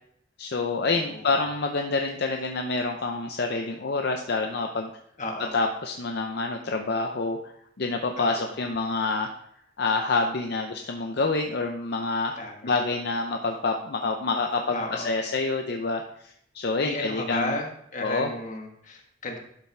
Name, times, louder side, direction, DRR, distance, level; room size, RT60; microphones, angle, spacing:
voice 1, 0.4-4.9 5.5-7.5 7.8-9.3 9.8-12.3 12.6-17.6 18.0-18.3, left 3 dB, 60° left, 3 dB, 0.6 m, -27 dB
voice 2, 0.9-1.4 5.2-5.6 8.2-8.5 12.4-12.7 14.7-15.1 16.8-19.4, left 2 dB, 45° left, 1 dB, 1.5 m, -34 dB
11.5 x 5.7 x 3.4 m, 0.72 s
head